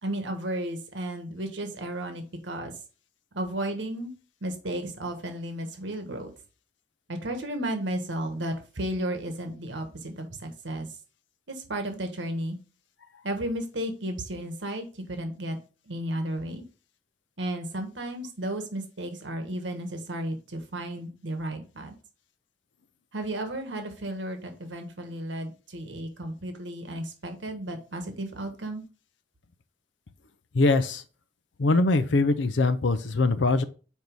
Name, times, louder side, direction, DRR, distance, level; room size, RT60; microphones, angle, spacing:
voice 1, 0.0-2.7 3.3-4.1 4.4-6.3 7.1-10.9 11.5-12.6 13.2-15.6 15.9-16.6 17.4-21.9 23.1-28.8, right 1 dB, 90° right, 1.5 m, -33 dB
voice 2, 30.5-31.0 31.6-33.6, left 3 dB, 85° left, 0.6 m, -22 dB
5.4 x 4.6 x 5.3 m
head